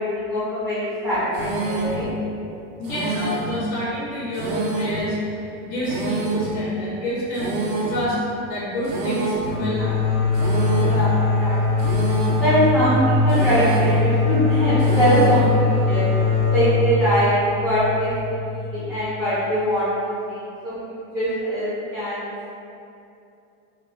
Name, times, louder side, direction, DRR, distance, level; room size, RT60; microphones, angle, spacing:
voice 1, 0.0-2.1 5.6-5.8 10.7-11.9 12.4-16.1 16.5-22.5, equal, ahead, -13 dB, 0.5 m, -23 dB
sound 1, 1.3-2.0 2.8-3.6 4.3-5.1 5.8-6.5 7.3-8.1 8.8-9.6 10.3-11.1 11.8-12.5 13.3-14.0 14.8-15.5, right 3 dB, 75° right, 0.5 m, -27 dB
voice 2, 2.8-5.2 5.6-7.5 7.9-8.2 8.5-10.2, equal, 80° left, -7 dB, 0.9 m, -28 dB
sound 2, 9.4-18.9, left 3 dB, 45° left, 1.0 m, -21 dB
2.2 x 2.1 x 3.7 m, 2.7 s
cardioid pair, 165°, 30 cm